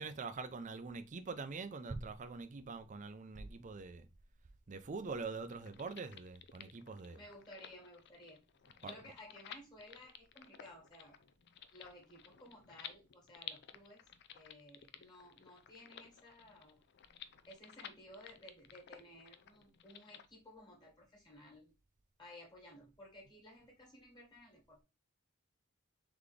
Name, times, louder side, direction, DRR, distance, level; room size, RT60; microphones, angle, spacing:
voice 1, 0.0-4.1 4.7-7.3 8.8-9.0, right 4 dB, 35° right, 0.5 m, -44 dB
sound 1, 5.5-20.3, left 9 dB, 55° left, 0.4 m, -54 dB
voice 2, 7.1-8.4 8.9-11.2 11.7-14.0 14.3-16.8 17.5-21.7 22.2-24.8, left 1 dB, 20° left, 1.7 m, -56 dB
3.9 x 3.5 x 3.2 m
head